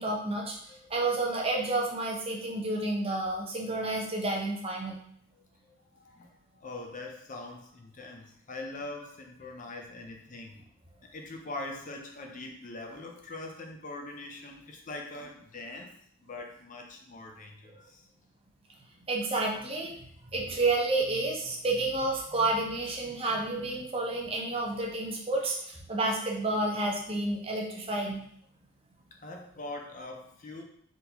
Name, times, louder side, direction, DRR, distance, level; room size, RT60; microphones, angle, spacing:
voice 1, 0.0-0.6 0.9-5.0 19.1-19.9 20.3-28.2, right 2 dB, 25° right, -1 dB, 0.7 m, -30 dB
voice 2, 5.7-6.3 6.6-10.6 11.1-15.9 16.2-18.0 29.2-30.6, left 2 dB, 35° left, 2 dB, 0.5 m, -42 dB
4.0 x 3.9 x 2.9 m, 0.68 s
head